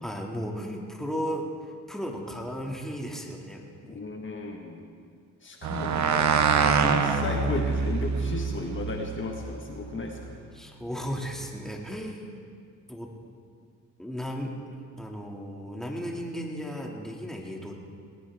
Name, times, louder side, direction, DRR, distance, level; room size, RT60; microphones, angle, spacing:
voice 1, 0.0-4.0 10.5-12.3 12.9-13.1 14.0-14.6 14.9-17.7, equal, ahead, -1 dB, 2.5 m, -35 dB
voice 2, 3.9-4.8 5.4-6.3 6.6-10.3, left 3 dB, 40° left, 2 dB, 1.7 m, -34 dB
sound 1, 5.6-10.3, right 6 dB, 65° right, 1.3 m, -26 dB
19.5 x 18.0 x 3.7 m, 2.1 s
cardioid pair, 90°, 30 cm